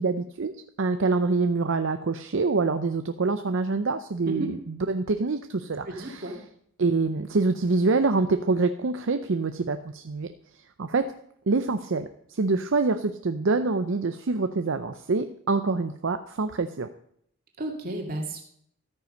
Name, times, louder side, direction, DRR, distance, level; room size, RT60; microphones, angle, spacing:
voice 1, 0.0-6.3 6.8-10.3 10.8-11.1 11.5-16.9, right 3 dB, 60° right, 8 dB, 0.6 m, -26 dB
voice 2, 5.9-6.4 17.6-18.4, right 1 dB, 45° right, 2 dB, 2.2 m, -33 dB
13.5 x 9.4 x 5.3 m, 0.69 s
head